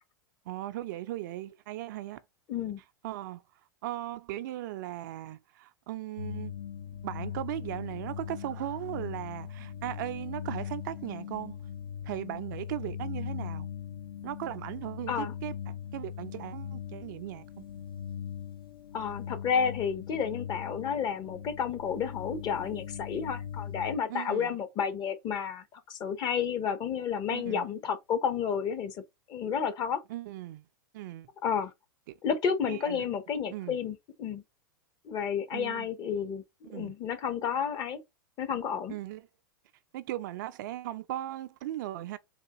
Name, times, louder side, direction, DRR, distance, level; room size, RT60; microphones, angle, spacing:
voice 1, 0.5-2.2 3.0-3.4 3.8-6.6 7.0-11.6 12.0-13.7 14.2-17.7 24.1-24.5 27.3-27.7 30.1-30.7 30.9-31.3 32.1-32.2 32.7-33.1 33.5-33.8 35.5-35.9 36.6-36.9 38.9-39.3 39.9-42.2, right 14 dB, 60° right, 0.4 m, -38 dB
voice 2, 2.5-2.8 15.1-15.3 18.9-29.0 29.3-30.0 31.4-31.7 32.2-34.4 35.0-36.4 36.7-38.0 38.4-39.0, left 7 dB, 35° left, 0.7 m, -31 dB
sound 1, 6.2-24.0, left 9 dB, 85° left, 0.5 m, -40 dB
3.5 x 2.3 x 2.9 m
hypercardioid pair, 110°, 12 cm